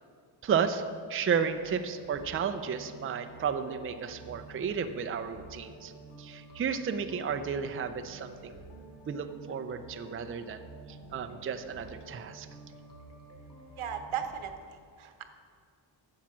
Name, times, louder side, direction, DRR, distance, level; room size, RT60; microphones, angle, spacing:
voice 1, 0.4-0.8 1.1-5.9 6.2-8.5 9.1-10.6 10.9-12.5, right 6 dB, 30° right, 8 dB, 0.5 m, -33 dB
sound 1, 1.5-14.3, right 2 dB, 60° left, 2.5 m, -50 dB
voice 2, 13.8-15.2, right 8 dB, 85° right, 7 dB, 1.1 m, -37 dB
10.0 x 7.4 x 6.1 m, 2.2 s
wide cardioid pair, 125°, 48 cm